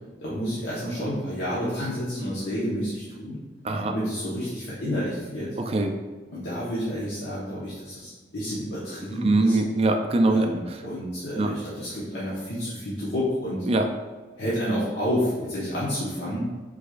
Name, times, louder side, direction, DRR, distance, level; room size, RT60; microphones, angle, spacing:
voice 1, 0.2-3.4 3.8-5.6 6.3-9.6 10.3-13.6 14.4-16.4, equal, 80° left, -9 dB, 1.1 m, -30 dB
voice 2, 5.6-5.9 9.2-10.5 11.4-11.5 13.7-13.8, right 2 dB, 35° right, 4 dB, 0.3 m, -22 dB
4.8 x 4.2 x 2.4 m, 1.3 s
head